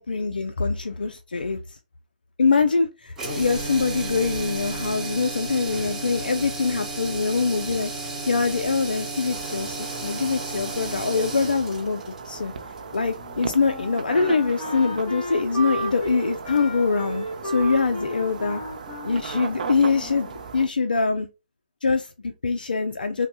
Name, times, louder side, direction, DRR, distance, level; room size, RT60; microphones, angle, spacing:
voice 1, 0.0-1.8 2.4-7.9 8.3-12.5 12.9-18.6 19.0-20.3 20.5-21.3 21.8-23.3, left 4 dB, 85° left, 0.3 m, -24 dB
sound 1, 3.1-13.2, right 2 dB, 10° right, 0.8 m, -33 dB
sound 2, 9.3-20.7, right 5 dB, 60° right, 0.5 m, -37 dB
Wind instrument woodwind instrument, 13.2-20.4, equal, 25° left, 0.9 m, -33 dB
3.1 x 2.0 x 2.9 m
hypercardioid pair, 145°, 5 cm